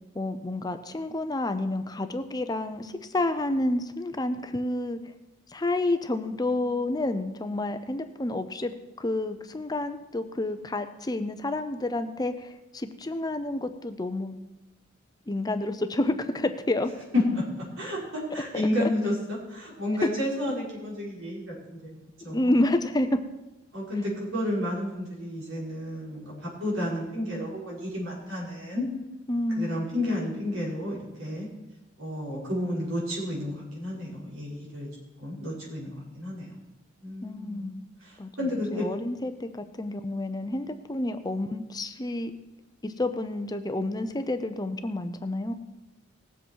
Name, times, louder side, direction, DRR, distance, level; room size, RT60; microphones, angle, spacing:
voice 1, 0.1-5.0 5.5-14.4 15.3-16.9 18.8-18.9 22.3-23.2 29.3-30.0 37.2-37.8 38.2-38.3 38.7-42.3 42.8-45.5, left 2 dB, 20° left, 9 dB, 0.6 m, -29 dB
voice 2, 17.1-17.4 17.8-22.6 23.7-28.8 29.6-31.5 32.0-34.9 35.2-36.5 37.0-37.6 38.0-38.9, left 1 dB, 85° right, -5 dB, 5.5 m, -31 dB
19.0 x 7.8 x 4.6 m, 1.0 s
head